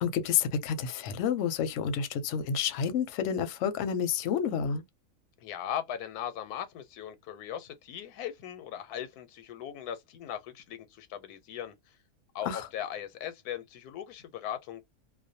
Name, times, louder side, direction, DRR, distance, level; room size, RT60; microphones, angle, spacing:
voice 1, 0.0-4.8 12.4-12.7, left 7 dB, 65° left, 0.8 m, -29 dB
voice 2, 5.4-12.0 12.3-14.8, left 10 dB, 85° left, 1.1 m, -39 dB
2.5 x 2.1 x 2.6 m
omnidirectional pair, 1.6 m